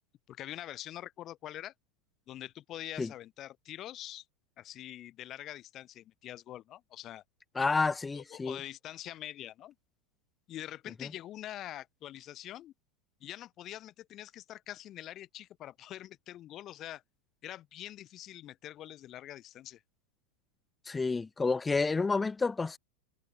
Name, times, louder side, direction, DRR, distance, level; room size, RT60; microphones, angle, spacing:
voice 1, 0.3-1.7 2.3-4.2 4.6-7.2 8.1-9.7 10.5-12.7 13.2-17.0 17.4-19.8, left 13 dB, 30° left, 4.7 m, -44 dB
voice 2, 7.6-8.6 20.9-22.8, left 4 dB, 10° left, 0.3 m, -29 dB
supercardioid pair, 160°, 0 cm